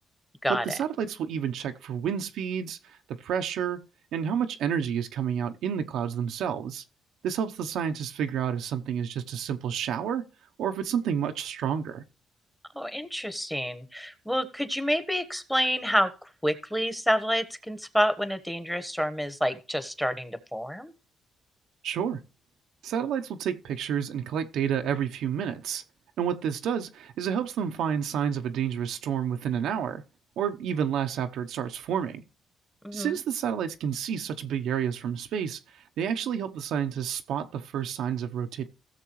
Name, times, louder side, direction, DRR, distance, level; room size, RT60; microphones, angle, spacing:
voice 1, 0.5-2.8 3.2-3.8 4.1-6.8 7.2-10.2 10.6-12.0 21.8-22.2 22.8-25.8 26.2-30.0 30.4-32.2 32.9-38.7, right 8 dB, 80° right, 0.8 m, -30 dB
voice 2, 12.7-16.1 16.4-20.9 32.8-33.2, equal, 5° left, 1.2 m, -28 dB
16.0 x 6.6 x 3.1 m
cardioid pair, 90°, 0 cm